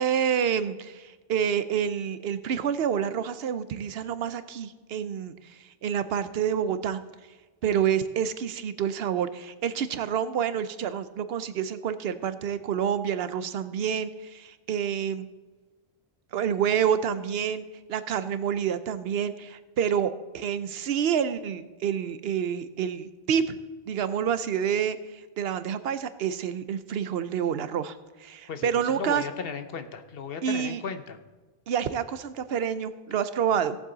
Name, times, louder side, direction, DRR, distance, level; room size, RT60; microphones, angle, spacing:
voice 1, 0.0-7.0 7.6-15.3 16.3-23.6 23.9-29.2 30.4-30.8 31.7-33.8, right 8 dB, 75° right, 13 dB, 0.9 m, -28 dB
voice 2, 28.5-31.2, left 6 dB, 70° left, 9 dB, 1.0 m, -36 dB
17.5 x 7.4 x 3.9 m, 1.3 s
omnidirectional pair, 1.0 m